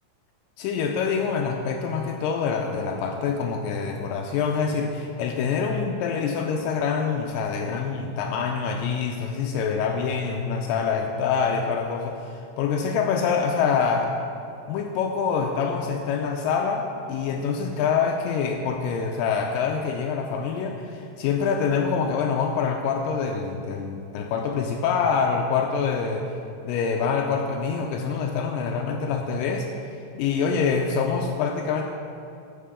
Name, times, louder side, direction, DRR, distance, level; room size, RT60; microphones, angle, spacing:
voice 1, 0.6-14.1 14.7-26.3 26.6-29.7 30.2-31.8, left 6 dB, 85° left, 2 dB, 2.3 m, -25 dB
14.0 x 7.4 x 3.7 m, 2.5 s
omnidirectional pair, 3.9 m